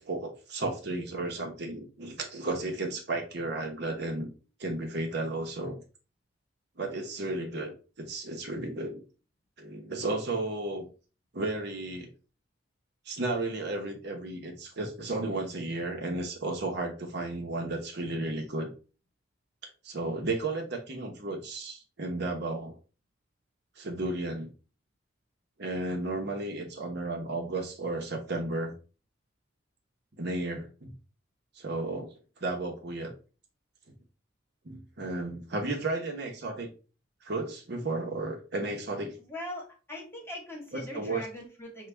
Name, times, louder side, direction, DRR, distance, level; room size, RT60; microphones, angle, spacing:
voice 1, 0.0-4.3 4.6-5.8 6.8-9.0 9.6-10.9 11.3-12.1 13.1-18.7 19.8-22.8 23.8-24.5 25.6-28.7 30.2-30.9 31.6-32.1 32.4-33.1 34.6-36.7 37.2-39.1 40.7-41.2, right 2 dB, 60° right, 2 dB, 0.9 m, -33 dB
voice 2, 39.2-41.9, left 1 dB, 15° left, -1 dB, 1.3 m, -41 dB
5.6 x 2.3 x 3.3 m, 0.35 s
head